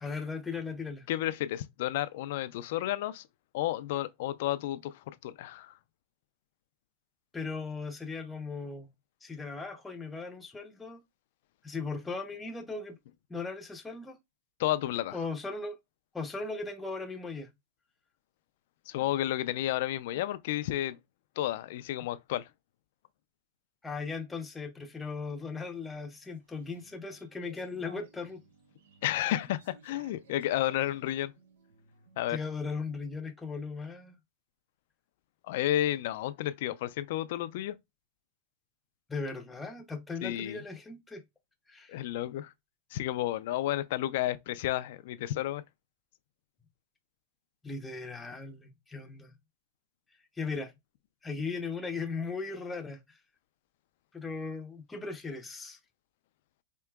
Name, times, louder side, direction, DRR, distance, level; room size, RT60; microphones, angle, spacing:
voice 1, 0.0-1.1 7.3-8.9 9.2-11.0 11.6-13.0 13.3-14.2 15.1-15.8 16.1-17.5 23.8-28.4 32.3-34.2 39.1-41.2 41.7-42.0 47.6-49.3 50.3-50.7 51.2-53.2 54.1-55.8, left 4 dB, 10° left, 0.6 m, -38 dB
voice 2, 1.1-3.2 3.5-4.9 5.2-5.7 14.6-15.2 18.9-21.0 21.4-22.5 29.0-31.3 32.2-32.4 35.4-37.8 40.2-40.6 41.9-42.5 42.9-45.6, left 13 dB, 65° left, 0.4 m, -31 dB
sound 1, 25.5-32.3, right 4 dB, 80° right, 1.0 m, -58 dB
4.5 x 2.9 x 2.3 m
hypercardioid pair, 130°, 0 cm